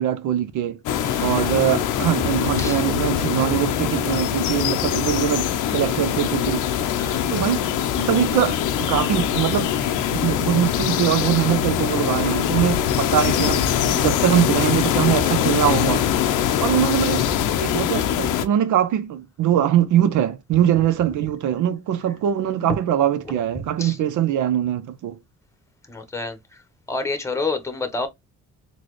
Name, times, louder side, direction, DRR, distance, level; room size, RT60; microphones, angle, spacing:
voice 1, 0.0-0.8 1.2-6.7 7.3-7.6 8.0-9.7 10.1-16.0 16.6-17.3 17.6-25.1, right 10 dB, 75° right, 0.6 m, -22 dB
sound 1, 0.9-18.5, left 10 dB, 90° left, 0.6 m, -23 dB
voice 2, 1.0-1.7 2.6-2.8 7.0-7.5 16.6-17.2 23.8-24.0 25.9-26.4 26.9-28.1, left 3 dB, 10° left, 1.0 m, -30 dB
4.0 x 2.3 x 3.1 m
cardioid pair, 90°, 30 cm